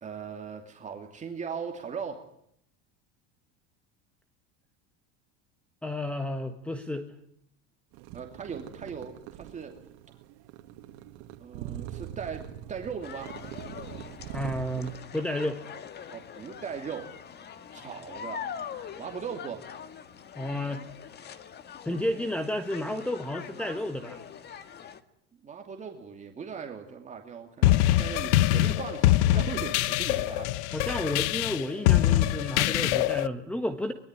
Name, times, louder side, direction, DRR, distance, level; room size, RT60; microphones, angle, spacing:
voice 1, 0.0-2.2 8.1-9.7 11.4-13.3 16.1-17.1 17.7-18.4 19.0-19.6 24.5-24.6 25.4-30.5, right 6 dB, 20° right, 2 dB, 2.7 m, -39 dB
voice 2, 5.8-7.1 14.3-15.6 20.4-20.8 21.8-24.2 30.7-33.9, left 1 dB, 5° left, 8 dB, 1.4 m, -31 dB
sound 1, 7.9-15.0, right 10 dB, 65° right, 2.5 m, -42 dB
sound 2, 13.0-25.0, left 7 dB, 30° left, 1.8 m, -43 dB
sound 3, 27.6-33.3, left 14 dB, 80° left, 1.0 m, -24 dB
24.0 x 21.0 x 9.8 m, 0.73 s
cardioid pair, 150°, 33 cm